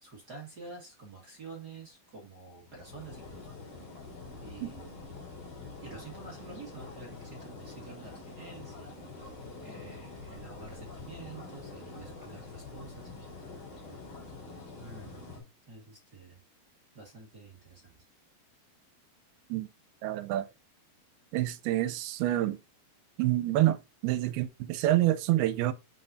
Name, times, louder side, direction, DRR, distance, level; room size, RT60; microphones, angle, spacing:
voice 1, 0.0-3.6 4.4-5.1 5.8-8.9 9.6-13.1 14.8-15.2 15.7-16.4 16.9-17.9, right 4 dB, 40° right, 1.5 m, -48 dB
sound 1, 2.6-15.4, left 3 dB, 55° left, 4.5 m, -46 dB
voice 2, 20.0-20.5 21.3-22.6 23.2-25.7, right 14 dB, 90° right, 2.6 m, -27 dB
7.3 x 5.5 x 2.6 m
omnidirectional pair, 4.4 m